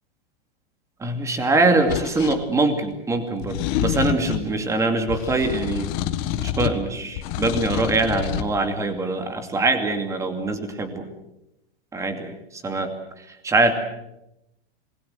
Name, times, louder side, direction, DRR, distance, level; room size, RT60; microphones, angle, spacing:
voice 1, 1.0-5.9 6.3-11.1 11.9-12.9 13.3-13.7, right 2 dB, 10° right, 7 dB, 2.5 m, -23 dB
sound 1, 1.9-2.4 3.4-4.5 5.1-6.8 7.2-8.5, left 11 dB, 35° left, 1.7 m, -27 dB
27.0 x 21.0 x 7.9 m, 0.87 s
supercardioid pair, 160°, 31 cm